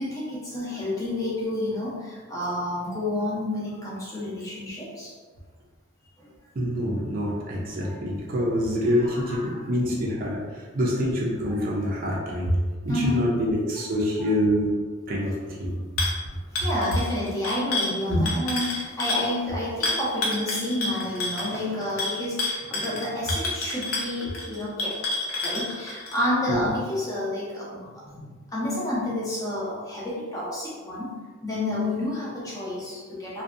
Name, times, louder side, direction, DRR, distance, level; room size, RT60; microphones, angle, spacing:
voice 1, 0.0-5.1 6.2-6.3 7.8-8.0 9.0-9.6 11.5-11.6 12.9-13.2 14.2-14.3 16.5-25.0 25.4-31.1 31.4-33.4, left 1 dB, 15° left, -6 dB, 0.5 m, -30 dB
voice 2, 6.5-12.6 12.8-14.7 15.1-15.8 18.1-18.2 26.5-26.7, equal, 40° right, -4 dB, 0.4 m, -26 dB
sound 1, 16.0-16.2 16.6-19.3 19.8-26.2, left 2 dB, 80° left, 0.5 m, -29 dB
2.6 x 2.2 x 2.4 m, 1.5 s
head